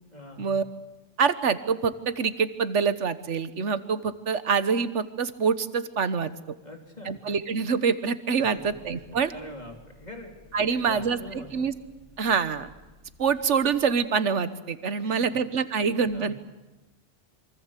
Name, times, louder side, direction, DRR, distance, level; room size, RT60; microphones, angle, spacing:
voice 1, 0.1-0.6 6.6-7.2 8.4-8.7 9.3-11.7 15.0-15.5 15.7-15.8 16.1-16.3, left 1 dB, 35° left, 2 dB, 3.4 m, -44 dB
voice 2, 1.2-6.3 7.0-9.3 10.5-11.7 12.2-12.7 13.2-16.3, right 6 dB, 85° right, 13 dB, 1.5 m, -25 dB
sound 1, 8.6-13.8, left 2 dB, 75° left, 4.3 m, -55 dB
27.0 x 24.0 x 8.3 m, 1.1 s
omnidirectional pair, 1.2 m